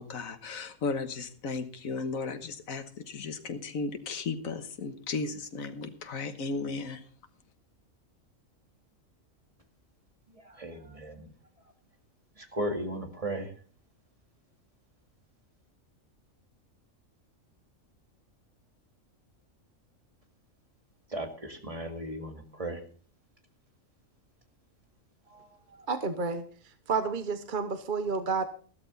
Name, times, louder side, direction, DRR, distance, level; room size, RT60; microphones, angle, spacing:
voice 1, 0.0-7.0, left 4 dB, 85° left, 8 dB, 1.6 m, -35 dB
voice 2, 10.3-11.3 12.4-13.5 21.1-22.8 25.3-25.9, right 1 dB, 25° right, 4 dB, 2.2 m, -37 dB
voice 3, 25.9-26.4 26.9-28.4, right 4 dB, 40° right, 10 dB, 1.0 m, -30 dB
14.0 x 13.0 x 4.0 m, 0.42 s
omnidirectional pair, 1.4 m